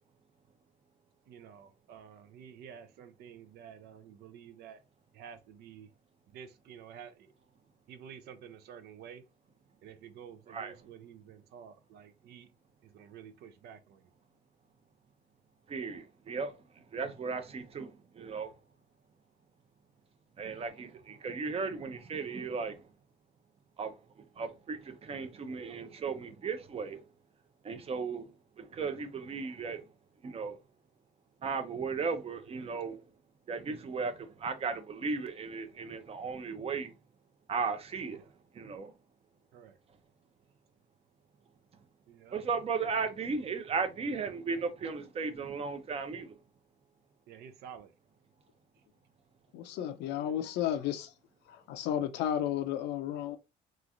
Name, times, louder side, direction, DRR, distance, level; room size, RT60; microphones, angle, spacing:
voice 1, 1.3-4.8 5.1-5.9 6.3-7.3 7.9-9.2 9.8-12.5 12.8-14.1 38.1-38.3 39.5-39.8 42.1-42.4 47.3-47.9, right 8 dB, 75° right, 0.6 m, -50 dB
voice 2, 15.7-18.5 20.4-22.8 23.8-24.0 24.4-27.0 27.6-28.3 28.6-29.8 30.2-30.6 31.4-33.0 33.5-36.9 37.5-38.3 38.5-38.9 42.3-46.3, right 5 dB, 35° right, 0.7 m, -36 dB
voice 3, 49.5-51.1 51.5-53.4, left 10 dB, 85° left, 0.6 m, -33 dB
3.1 x 2.4 x 2.5 m
cardioid pair, 110°, 17 cm